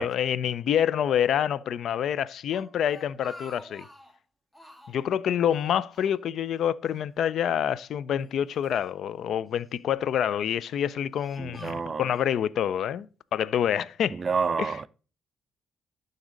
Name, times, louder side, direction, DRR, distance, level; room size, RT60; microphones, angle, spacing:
voice 1, 0.0-3.9 4.9-14.2 14.6-14.8, left 9 dB, 70° left, 0.3 m, -27 dB
Speech, 2.5-4.2 4.5-5.1 5.5-6.6 6.9-7.0 7.8-8.8 9.5-10.0 10.6-12.3, left 1 dB, 10° left, 0.9 m, -50 dB
voice 2, 11.4-12.0 14.2-14.9, right 5 dB, 35° right, 0.3 m, -28 dB
11.5 x 4.0 x 3.8 m
cardioid pair, 90°, 0 cm